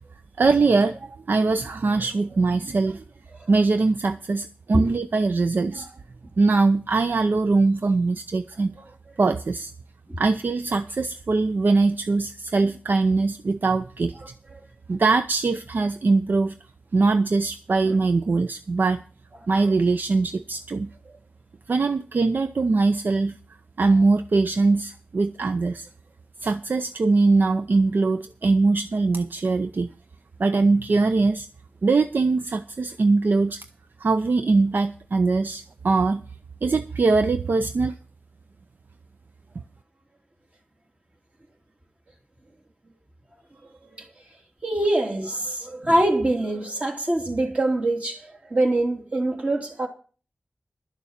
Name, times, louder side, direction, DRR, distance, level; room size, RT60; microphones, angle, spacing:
voice 1, 0.4-3.0 3.5-5.9 6.4-8.8 9.2-9.7 10.2-14.2 14.9-16.6 16.9-19.0 19.5-20.9 21.7-23.4 23.8-25.9 26.4-29.9 30.4-31.5 31.8-33.6 34.0-36.2 36.6-37.9, right 3 dB, 65° right, 0.6 m, -22 dB
voice 2, 44.6-49.9, right 1 dB, 40° right, 2.8 m, -24 dB
12.0 x 7.0 x 7.3 m
wide cardioid pair, 90°, 4 cm